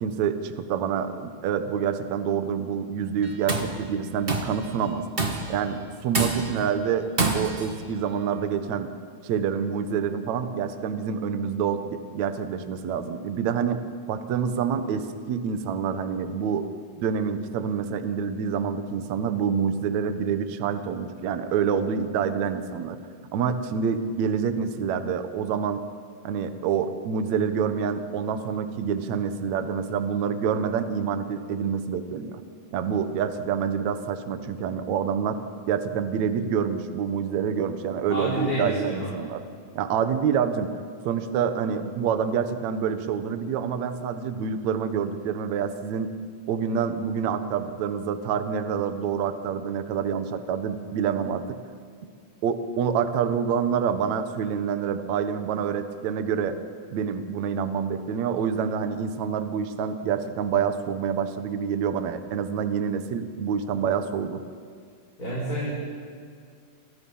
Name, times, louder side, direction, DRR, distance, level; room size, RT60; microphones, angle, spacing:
voice 1, 0.0-5.0 5.5-8.9 9.2-16.7 17.0-23.0 23.3-25.8 26.2-32.4 32.7-35.4 35.7-39.4 39.8-40.7 41.0-46.1 46.5-51.4 52.4-56.6 56.9-64.4, right 7 dB, 60° right, 9 dB, 2.1 m, -27 dB
Tools, 3.2-3.8 4.3-4.6 5.2-5.6 6.1-6.7 7.2-7.7, right 3 dB, 35° right, 0.8 m, -27 dB
voice 2, 38.1-39.1 65.2-65.7, equal, 20° left, -6 dB, 6.2 m, -29 dB
29.0 x 28.0 x 5.6 m, 2.2 s
omnidirectional pair, 4.5 m